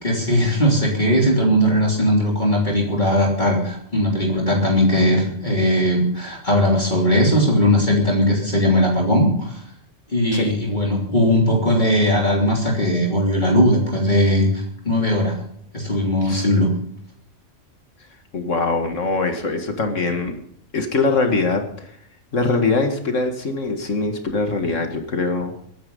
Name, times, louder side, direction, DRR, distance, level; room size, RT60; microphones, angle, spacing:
voice 1, 0.0-9.6 10.1-15.4 15.7-16.7, equal, 40° left, -1 dB, 3.4 m, -19 dB
voice 2, 18.3-20.4 20.7-21.9 22.3-25.6, left 3 dB, 85° left, 5 dB, 2.3 m, -22 dB
22.0 x 9.8 x 5.5 m, 0.67 s
omnidirectional pair, 1.3 m